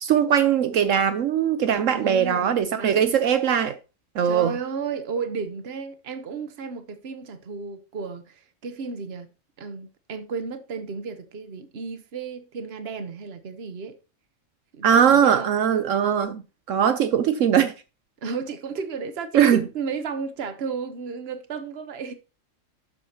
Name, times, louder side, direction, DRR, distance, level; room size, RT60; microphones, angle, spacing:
voice 1, 0.0-3.8 4.1-4.6 14.8-16.4 16.7-17.7 19.3-19.6, right 8 dB, 75° right, 1.1 m, -20 dB
voice 2, 1.9-3.2 4.2-9.3 9.6-14.0 14.7-15.6 18.2-22.1, right 5 dB, 50° right, 1.3 m, -33 dB
11.5 x 8.0 x 2.9 m
omnidirectional pair, 1.4 m